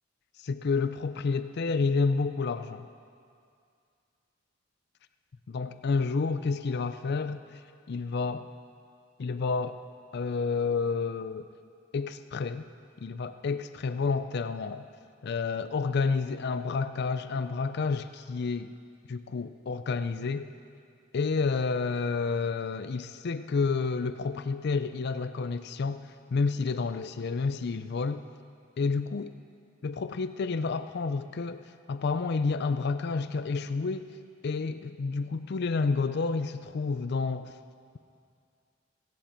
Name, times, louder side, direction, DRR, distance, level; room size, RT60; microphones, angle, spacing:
voice 1, 0.4-2.9 5.5-7.6 7.9-8.5 9.2-9.8 10.1-11.5 11.9-12.7 13.0-14.9 15.2-18.7 19.1-20.5 21.1-28.2 28.8-29.3 29.8-34.1 34.4-37.5, left 4 dB, 55° left, 11 dB, 0.4 m, -30 dB
17.0 x 16.5 x 4.4 m, 2.4 s
head